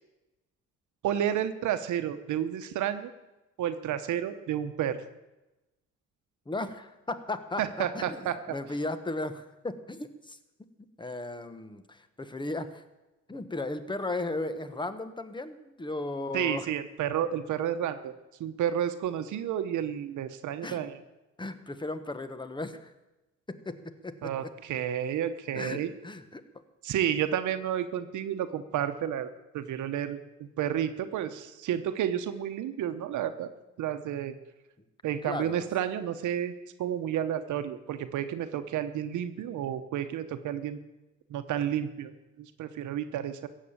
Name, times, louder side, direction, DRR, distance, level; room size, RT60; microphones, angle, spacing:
voice 1, 1.0-3.1 3.6-5.0 7.6-8.4 16.3-18.1 18.4-21.0 24.2-25.9 26.8-29.3 29.5-33.5 33.8-34.4 35.0-36.5 36.8-40.8 41.3-42.1 42.4-43.5, right 10 dB, 75° right, 10 dB, 0.9 m, -31 dB
voice 2, 6.5-10.4 11.0-12.8 13.3-16.7 20.6-20.8 21.4-22.9 23.5-23.8 24.0-24.5 25.5-26.4 35.2-35.7, left 2 dB, 15° left, 11 dB, 1.3 m, -36 dB
15.5 x 7.6 x 8.8 m, 1.0 s
cardioid pair, 90°, 30 cm